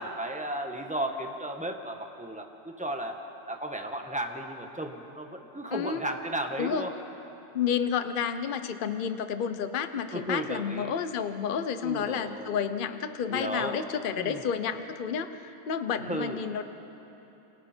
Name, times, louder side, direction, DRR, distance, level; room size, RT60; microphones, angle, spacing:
voice 1, 0.0-2.5 2.8-3.2 3.5-6.9 10.1-11.0 11.8-12.6 13.3-13.8 14.1-14.5 16.1-16.4, right 1 dB, 5° right, 3 dB, 1.1 m, -34 dB
voice 2, 5.7-6.0 6.6-6.9 7.5-16.6, left 7 dB, 55° left, 10 dB, 0.5 m, -30 dB
29.5 x 26.5 x 4.5 m, 3.0 s
omnidirectional pair, 2.2 m